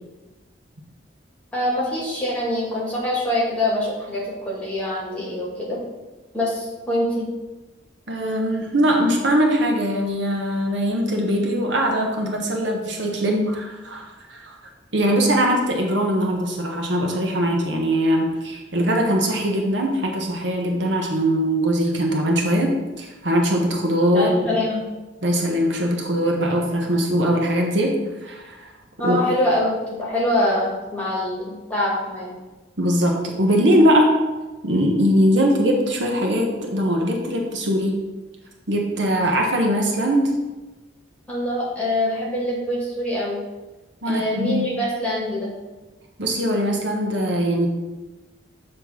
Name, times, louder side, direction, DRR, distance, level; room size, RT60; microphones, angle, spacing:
voice 1, 1.5-5.8 6.3-7.3 24.1-24.9 29.0-32.4 41.3-43.4 44.1-45.5, left 1 dB, 5° left, -6 dB, 2.1 m, -24 dB
voice 2, 8.1-14.6 14.9-24.3 25.2-28.7 29.0-29.2 32.8-34.2 34.6-38.1 38.7-40.4 44.0-44.7 46.2-47.7, equal, 70° right, 1 dB, 1.1 m, -21 dB
7.5 x 3.3 x 6.1 m, 1.2 s
head